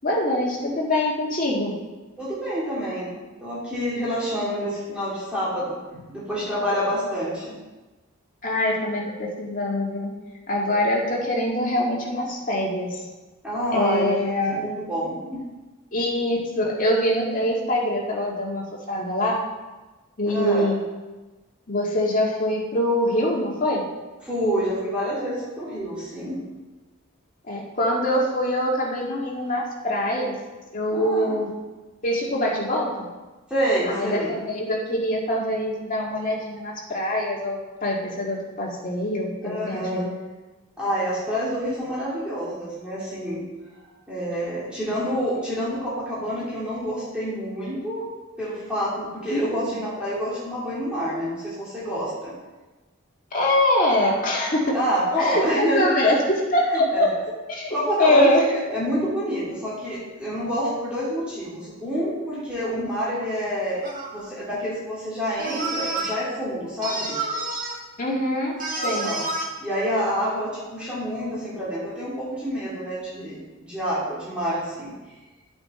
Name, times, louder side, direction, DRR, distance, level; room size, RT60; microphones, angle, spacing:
voice 1, 0.0-1.8 8.4-10.1 10.5-13.0 13.7-14.8 15.9-19.4 20.2-20.8 21.7-23.8 27.5-30.4 30.7-31.5 32.0-33.1 33.9-40.1 49.3-49.7 53.3-54.8 55.2-57.1 57.5-58.5 68.0-68.5 68.8-69.1, left 1 dB, 40° left, -3 dB, 2.0 m, -24 dB
voice 2, 2.2-5.8 6.1-7.5 13.4-15.5 20.3-20.7 24.2-26.4 30.9-31.4 33.5-34.3 39.4-40.0 40.8-43.5 44.1-48.1 48.4-52.3 54.7-56.1 56.7-57.1 57.7-67.1 68.8-69.2 69.6-74.9, equal, 5° right, -9 dB, 2.8 m, -27 dB
sound 1, 63.8-64.2 65.4-66.1 66.8-67.8 68.6-69.4, right 2 dB, 40° right, 1.6 m, -29 dB
10.5 x 8.0 x 4.4 m, 1.2 s
head